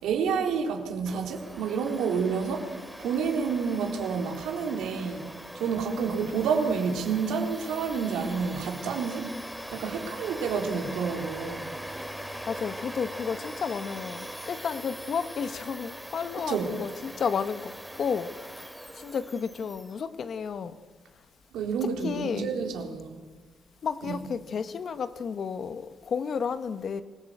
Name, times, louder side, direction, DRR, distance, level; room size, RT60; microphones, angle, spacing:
voice 1, 0.0-2.7 3.0-5.3 5.5-9.3 9.7-11.7 16.5-16.7 21.5-23.2 24.0-24.2, right 6 dB, 85° right, 3.9 m, -29 dB
Domestic sounds home sounds, 1.1-19.9, equal, ahead, 2.8 m, -41 dB
voice 2, 12.4-18.6 18.9-20.8 21.8-22.5 23.8-27.0, left 6 dB, 55° left, 1.5 m, -32 dB
26.0 x 17.5 x 8.1 m
cardioid pair, 90°, 0 cm